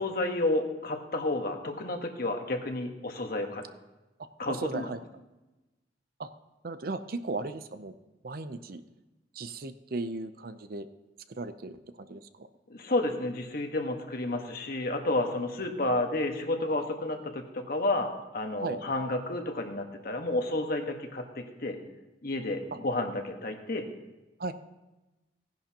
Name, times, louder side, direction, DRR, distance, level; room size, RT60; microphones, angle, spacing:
voice 1, 0.0-3.6 4.4-4.9 12.7-21.8 22.2-23.9, left 2 dB, 55° left, 4 dB, 1.4 m, -31 dB
voice 2, 4.5-5.0 6.2-6.3 6.6-7.9 8.2-8.8 9.3-10.9 11.3-12.5 18.6-18.8 22.7-22.8 24.4-24.5, right 3 dB, 55° right, 11 dB, 0.6 m, -36 dB
17.0 x 10.5 x 2.9 m, 1.1 s
head